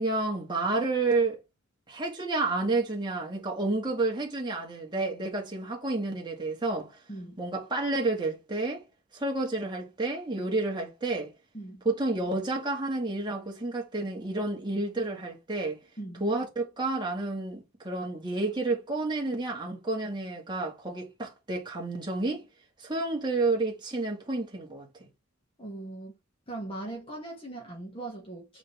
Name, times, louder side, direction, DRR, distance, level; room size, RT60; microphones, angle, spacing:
voice 1, 0.0-1.4 1.9-6.9 7.4-8.8 9.1-11.3 11.9-15.8 16.2-22.4 22.8-25.1, right 2 dB, 20° right, 2.0 m, -30 dB
voice 2, 7.1-7.4 11.5-11.8 16.0-16.2 25.6-26.2 26.5-28.6, right 2 dB, 25° left, 2.1 m, -40 dB
8.0 x 4.0 x 3.5 m
head